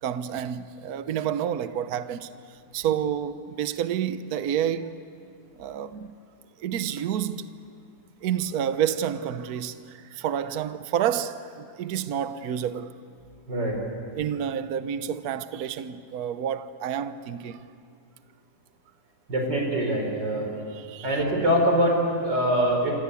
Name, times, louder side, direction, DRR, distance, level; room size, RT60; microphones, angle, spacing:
voice 1, 0.0-4.9 5.6-6.1 6.6-7.5 8.2-12.9 14.1-17.7 20.7-21.2, right 9 dB, 65° right, 1.3 m, -29 dB
voice 2, 19.3-20.5 21.0-22.9, equal, 85° right, 5.5 m, -23 dB
27.0 x 26.5 x 8.4 m
omnidirectional pair, 1.9 m